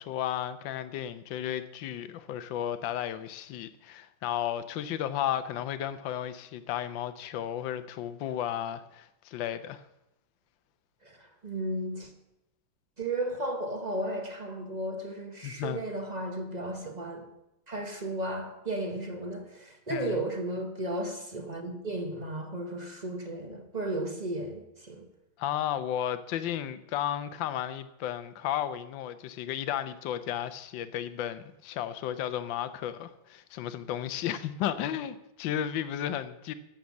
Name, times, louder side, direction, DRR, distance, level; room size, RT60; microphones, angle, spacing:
voice 1, 0.0-9.8 15.4-15.8 19.9-20.2 25.4-36.5, left 11 dB, 70° left, 1.4 m, -33 dB
voice 2, 11.0-12.1 13.0-17.3 17.7-25.1, right 1 dB, 30° right, 0.8 m, -34 dB
11.5 x 7.6 x 7.1 m
omnidirectional pair, 2.2 m